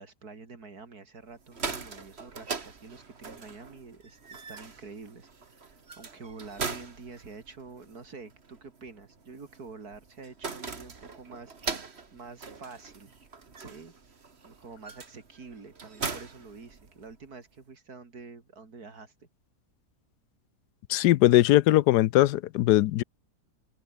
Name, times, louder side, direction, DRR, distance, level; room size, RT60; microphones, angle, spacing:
voice 1, 0.0-13.3 13.6-13.9 14.4-19.3, right 4 dB, 65° right, 3.5 m, -47 dB
sound 1, 1.3-17.3, right 4 dB, 40° right, 2.0 m, -41 dB
voice 2, 20.9-23.0, left 15 dB, 80° left, 1.2 m, -20 dB
omnidirectional pair, 1.7 m